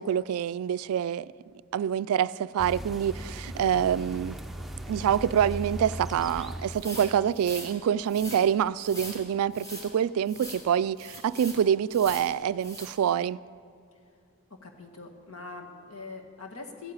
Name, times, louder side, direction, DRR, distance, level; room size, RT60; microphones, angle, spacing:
voice 1, 0.0-1.3 1.7-4.4 4.9-13.4, right 9 dB, 80° right, 0.3 m, -26 dB
sound 1, 2.6-6.9, right 1 dB, ahead, 0.6 m, -38 dB
sound 2, 6.7-7.7 8.1-8.4 8.8-9.2 9.5-9.9 10.3-10.6 11.0-11.6 11.9-12.3 12.6-12.9, equal, 15° left, 3.6 m, -41 dB
voice 2, 14.5-16.9, left 3 dB, 70° left, 1.8 m, -43 dB
14.5 x 9.6 x 8.9 m
head